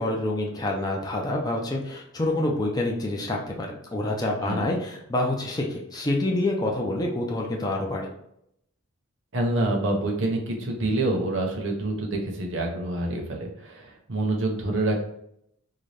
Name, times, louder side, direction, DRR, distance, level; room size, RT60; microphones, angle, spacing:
voice 1, 0.0-8.1, left 1 dB, 20° left, 0 dB, 0.5 m, -27 dB
voice 2, 4.4-4.7 9.3-15.0, right 2 dB, 60° right, 1 dB, 0.7 m, -27 dB
3.9 x 2.2 x 3.2 m, 0.75 s
head